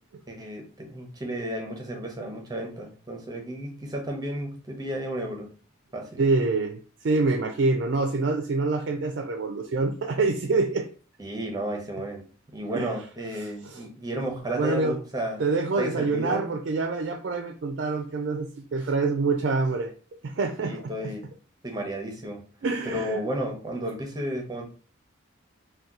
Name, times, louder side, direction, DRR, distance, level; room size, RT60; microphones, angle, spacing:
voice 1, 0.3-5.5 5.9-6.2 11.2-12.3 12.5-15.4 15.8-16.5 20.6-21.2 21.6-22.4 22.9-24.6, right 1 dB, 20° right, 1 dB, 0.7 m, -33 dB
voice 2, 6.2-10.9 12.7-12.9 13.4-13.8 14.6-15.0 15.4-19.9 20.2-21.1 22.6-23.2, right 3 dB, 60° right, 6 dB, 0.3 m, -26 dB
2.7 x 2.2 x 3.6 m, 0.40 s
head